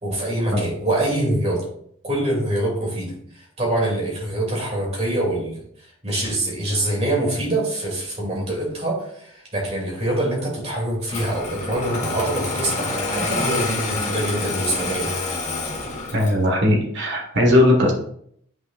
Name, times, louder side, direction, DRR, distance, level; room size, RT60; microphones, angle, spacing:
voice 1, 0.0-1.6 2.0-5.6 6.0-15.3, right 1 dB, 30° right, -3 dB, 2.7 m, -25 dB
Engine starting, 11.1-16.5, left 3 dB, 35° left, 1.4 m, -27 dB
voice 2, 16.1-17.9, left 1 dB, 55° right, -1 dB, 1.6 m, -18 dB
7.9 x 6.0 x 2.5 m, 0.66 s
head